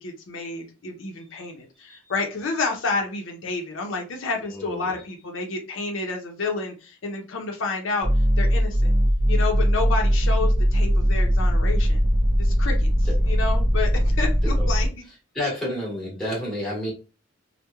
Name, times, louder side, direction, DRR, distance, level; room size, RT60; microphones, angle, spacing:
voice 1, 0.0-8.1 8.4-8.9 9.3-12.0 12.4-14.9, left 3 dB, 80° left, 2 dB, 0.6 m, -30 dB
voice 2, 4.5-5.0 15.3-16.9, left 1 dB, ahead, -5 dB, 1.1 m, -29 dB
sound 1, 8.0-14.9, equal, 25° right, 0.4 m, -20 dB
2.9 x 2.1 x 2.2 m, 0.32 s
head